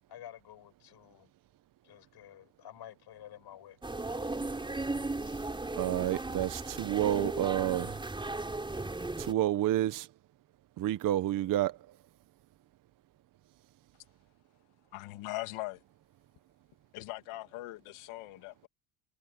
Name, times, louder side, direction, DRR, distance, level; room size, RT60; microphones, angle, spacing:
voice 1, 0.1-1.3 1.8-3.8 5.2-5.6, left 11 dB, 50° left, 6.5 m, -51 dB
sound 1, 3.8-9.3, right 2 dB, 10° right, 4.9 m, -36 dB
voice 2, 5.8-8.0 9.2-10.1 10.8-11.7, right 13 dB, 40° right, 0.8 m, -29 dB
voice 3, 14.9-15.8 16.9-18.7, left 18 dB, 80° left, 2.7 m, -40 dB
cardioid pair, 145°, 50 cm